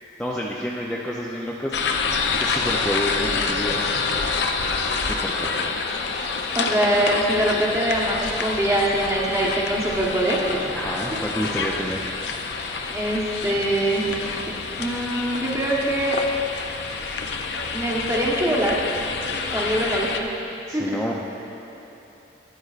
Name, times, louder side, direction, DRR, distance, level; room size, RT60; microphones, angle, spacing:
voice 1, 0.2-1.8 2.4-3.9 5.1-5.5 10.7-12.0 20.7-21.1, equal, 5° left, -5 dB, 0.4 m, -29 dB
sound 1, 1.7-20.2, left 4 dB, 65° left, 0.5 m, -27 dB
voice 2, 6.5-10.6 11.1-11.2 12.9-14.1 14.8-16.2 17.7-18.8 19.5-20.3 20.7-21.0, right 1 dB, 15° right, -4 dB, 1.1 m, -23 dB
12.5 x 9.1 x 2.4 m, 3.0 s
head